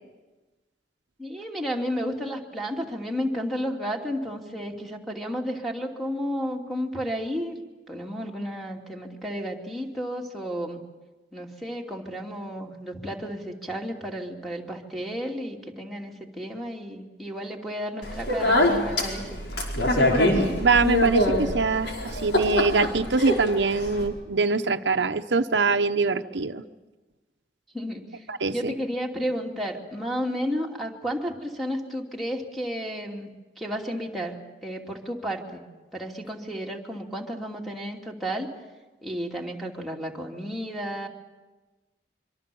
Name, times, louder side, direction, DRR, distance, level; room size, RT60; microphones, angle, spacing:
voice 1, 1.2-10.8 11.3-19.4 27.7-33.3 33.6-35.6 35.9-38.5 39.0-41.1, equal, ahead, -2 dB, 2.7 m, -32 dB
Speech, 18.0-24.1, left 1 dB, 85° left, 5.2 m, -24 dB
voice 2, 20.4-26.6 28.3-28.7, right 4 dB, 85° right, 8 dB, 0.9 m, -24 dB
25.0 x 24.5 x 7.1 m, 1.2 s
head